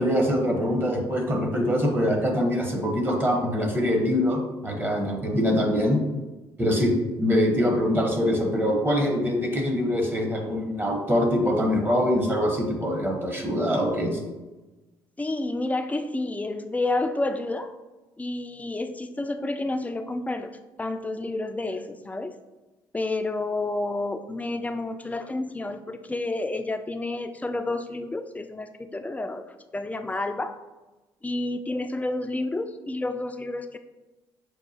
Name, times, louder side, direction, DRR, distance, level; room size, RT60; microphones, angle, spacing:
voice 1, 0.0-6.0 6.6-14.2, equal, 20° right, 1 dB, 1.0 m, -24 dB
voice 2, 15.2-17.8 18.2-22.4 22.9-29.4 29.7-30.5 31.2-33.8, left 2 dB, 15° left, 8 dB, 0.4 m, -30 dB
6.2 x 2.3 x 2.8 m, 1.1 s
hypercardioid pair, 55°, 11 cm